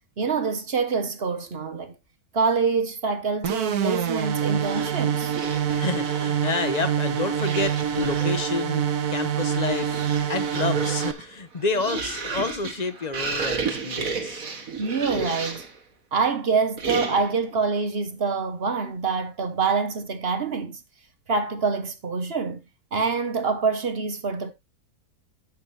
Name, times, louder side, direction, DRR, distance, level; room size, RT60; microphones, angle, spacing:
voice 1, 0.2-1.9 2.3-5.3 14.8-15.6 16.1-20.8 21.3-22.6 22.9-24.5, right 4 dB, 45° right, 1.0 m, -25 dB
sound 1, 3.4-11.1, right 8 dB, 80° right, 1.5 m, -26 dB
sound 2, 4.5-6.4 7.3-8.6 9.3-15.8 16.8-17.4, right 4 dB, 65° right, 2.0 m, -33 dB
voice 2, 5.7-14.4, left 4 dB, 30° left, 1.0 m, -29 dB
11.5 x 7.4 x 2.8 m
omnidirectional pair, 1.6 m